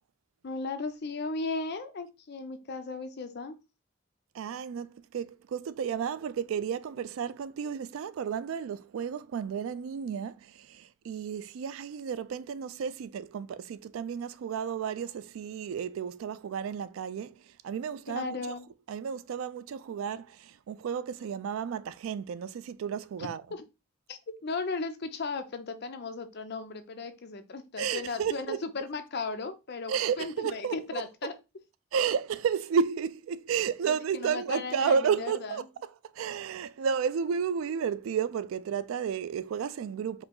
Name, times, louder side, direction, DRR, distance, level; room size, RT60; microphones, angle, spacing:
voice 1, 0.4-3.6 18.1-18.6 23.5-23.7 24.1-31.4 33.8-35.6, left 3 dB, 55° left, 0.6 m, -36 dB
voice 2, 4.3-17.3 17.6-18.4 18.9-23.4 27.8-28.6 29.9-31.0 31.9-35.6 36.1-40.2, right 7 dB, 80° right, 0.3 m, -32 dB
4.8 x 2.0 x 3.7 m
head